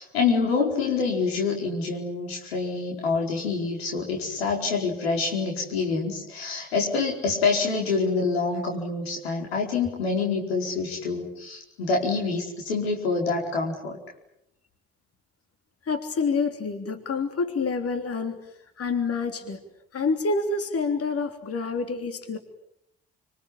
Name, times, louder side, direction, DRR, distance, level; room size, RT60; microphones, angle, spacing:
voice 1, 0.0-14.0, left 4 dB, 90° left, 0 dB, 4.8 m, -26 dB
voice 2, 15.8-18.4 18.8-19.6 19.9-22.4, left 4 dB, 50° left, 6 dB, 3.4 m, -27 dB
26.5 x 26.0 x 8.7 m, 0.78 s
hypercardioid pair, 45°, 30 cm